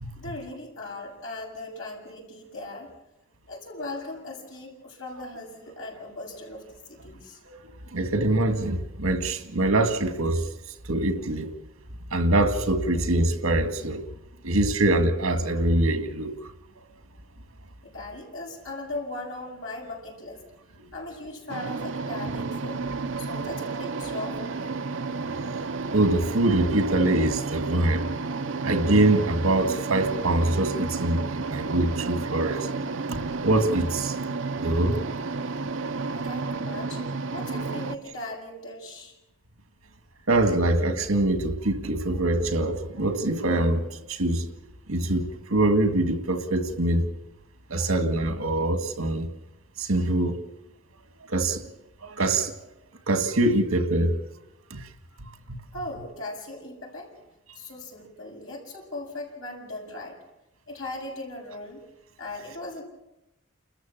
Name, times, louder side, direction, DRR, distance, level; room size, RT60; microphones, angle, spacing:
voice 1, 0.1-2.9 3.5-7.4 17.8-20.4 20.9-22.8 23.2-25.0 36.1-39.1 47.8-47.9 55.7-57.1 57.5-60.2 60.7-61.8 62.2-62.8, left 2 dB, 65° left, 7.4 m, -38 dB
voice 2, 7.9-10.5 10.9-11.5 12.1-14.0 14.4-16.3 16.8-16.9 25.2-25.5 25.9-28.1 28.6-32.7 33.1-34.1 34.6-35.0 40.3-43.8 44.1-44.5 44.9-47.1 47.7-49.3 49.8-50.4 51.3-51.6 52.0-52.5 53.1-54.1 54.7-54.8 55.5-55.6, right 2 dB, 80° right, 2.0 m, -24 dB
sound 1, 21.5-38.0, right 4 dB, 60° right, 0.7 m, -31 dB
30.0 x 14.0 x 7.4 m
head